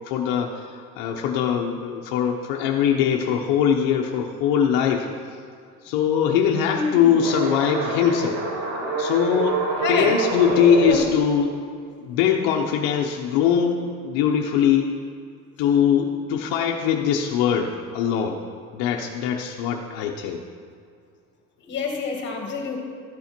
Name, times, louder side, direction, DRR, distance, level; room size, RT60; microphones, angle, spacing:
voice 1, 0.1-5.1 5.8-8.4 9.0-11.5 12.0-14.9 15.6-18.4 18.7-20.4, left 8 dB, 70° left, 1 dB, 0.9 m, -22 dB
voice 2, 6.7-7.2 9.8-10.2 21.6-22.8, left 5 dB, 30° left, 1 dB, 2.0 m, -27 dB
sound 1, 7.1-11.0, right 2 dB, 90° right, 2.0 m, -26 dB
13.5 x 8.5 x 4.5 m, 2.3 s
cardioid pair, 175°, 35 cm